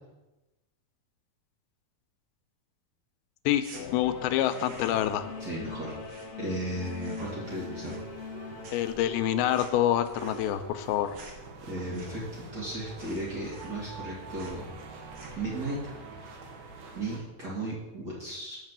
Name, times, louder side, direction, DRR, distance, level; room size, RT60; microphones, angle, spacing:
sound 1, 3.6-3.8 4.3-5.2 5.5-6.7 6.9-7.4 7.7-8.4 8.6-12.4 12.7-12.8 13.0-14.1 14.3-14.6 15.0-15.5, right 2 dB, 85° right, 1.0 m, -51 dB
Singing / Musical instrument, 3.7-8.7, left 5 dB, 65° left, 1.6 m, -41 dB
voice 1, 3.9-5.3 8.7-11.2, left 12 dB, 90° left, 10 dB, 2.5 m, -26 dB
voice 2, 5.4-8.0 11.6-14.6 15.3-15.8 16.9-18.6, right 1 dB, 35° right, -7 dB, 2.2 m, -35 dB
sound 2, 7.2-17.2, right 3 dB, 65° right, 2.6 m, -45 dB
7.4 x 5.4 x 7.4 m, 1.1 s
omnidirectional pair, 4.3 m